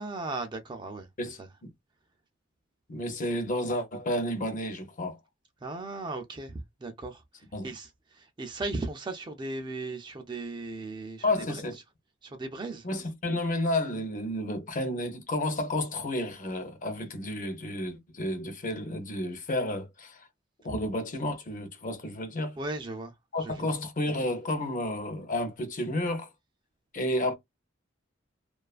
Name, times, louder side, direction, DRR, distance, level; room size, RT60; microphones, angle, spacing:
voice 1, 0.0-1.1 1.4-1.5 5.6-7.2 7.6-11.6 12.2-12.9 22.6-23.1 23.4-23.7, right 2 dB, 25° right, 0.4 m, -37 dB
voice 2, 2.9-5.2 7.5-7.7 11.2-11.8 12.8-20.3 20.6-22.6 23.3-26.3 26.9-27.3, left 1 dB, 40° left, 0.6 m, -31 dB
2.4 x 2.3 x 2.4 m
head